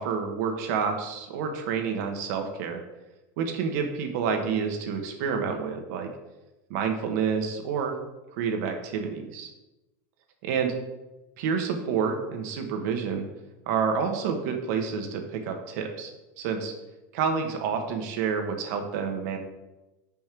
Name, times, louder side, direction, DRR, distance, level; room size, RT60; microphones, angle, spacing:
voice 1, 0.0-2.8 3.4-6.1 6.7-7.9 8.4-9.5 10.4-10.7 11.4-13.3 13.7-16.1 16.4-16.7 17.1-19.4, right 6 dB, 60° right, 4 dB, 1.2 m, -28 dB
6.2 x 5.6 x 4.6 m, 1.0 s
supercardioid pair, 175°, 10 cm